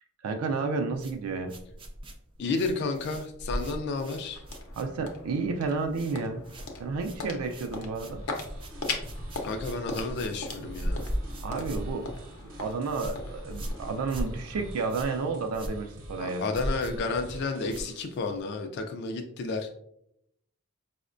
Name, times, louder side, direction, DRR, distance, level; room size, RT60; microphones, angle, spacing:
voice 1, 0.2-1.5 4.8-6.4 6.8-8.2 11.4-12.1 12.6-16.5, right 4 dB, 85° right, 4 dB, 0.4 m, -31 dB
sound 1, 0.9-5.3 5.6-6.2 6.4-18.4, equal, 25° right, 0.5 m, -38 dB
voice 2, 2.4-4.4 9.4-11.0 16.2-19.7, left 3 dB, 50° left, 5 dB, 0.3 m, -31 dB
sound 2, 3.8-15.9, left 3 dB, 85° left, 0.6 m, -40 dB
sound 3, 8.1-18.2, equal, 70° right, 0.9 m, -46 dB
4.9 x 2.1 x 2.4 m, 0.75 s
head